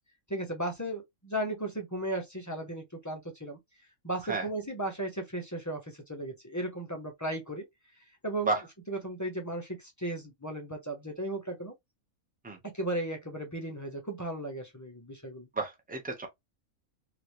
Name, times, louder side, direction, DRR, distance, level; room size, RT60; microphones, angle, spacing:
voice 1, 0.3-3.6 4.0-7.7 8.2-8.5 8.9-11.7 12.6-15.5, right 1 dB, 20° left, 0.6 m, -35 dB
voice 2, 15.5-16.3, right 3 dB, 5° right, 0.8 m, -31 dB
3.1 x 2.9 x 2.6 m
omnidirectional pair, 1.5 m